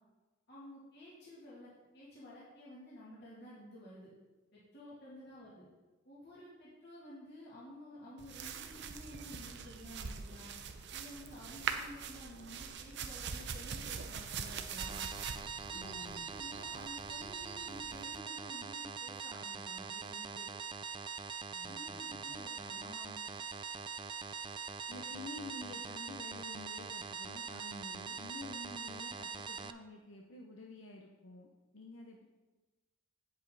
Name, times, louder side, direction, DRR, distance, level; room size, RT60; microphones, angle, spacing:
voice 1, 0.5-4.1 4.5-5.7 6.0-10.5 10.9-15.0 15.6-20.4 21.6-23.2, left 1 dB, 55° left, -9 dB, 2.7 m, -52 dB
sound 1, 8.2-18.2, right 6 dB, 60° right, 0.7 m, -43 dB
sound 2, 14.8-29.7, right 6 dB, 25° right, 0.3 m, -43 dB
voice 2, 15.7-16.3 21.5-22.0 22.3-22.4 24.9-31.5 31.7-32.2, left 2 dB, 80° left, 0 dB, 0.8 m, -50 dB
8.7 x 8.0 x 4.0 m, 1.2 s
head